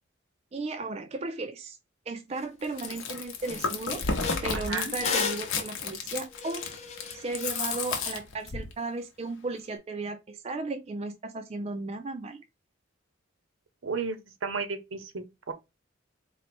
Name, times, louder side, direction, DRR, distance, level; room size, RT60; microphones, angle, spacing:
voice 1, 0.5-1.8 2.1-4.0 4.4-6.7 7.1-12.4, right 3 dB, 30° right, 0.3 m, -35 dB
sound 1, 2.4-2.5 2.8-3.1 3.4-8.2, left 5 dB, 35° left, 0.6 m, -36 dB
Chewing mastication, 2.6-8.7, left 4 dB, 75° left, 0.8 m, -32 dB
voice 2, 4.5-4.9 13.8-15.5, right 4 dB, 75° right, 0.7 m, -33 dB
4.1 x 2.1 x 4.2 m
head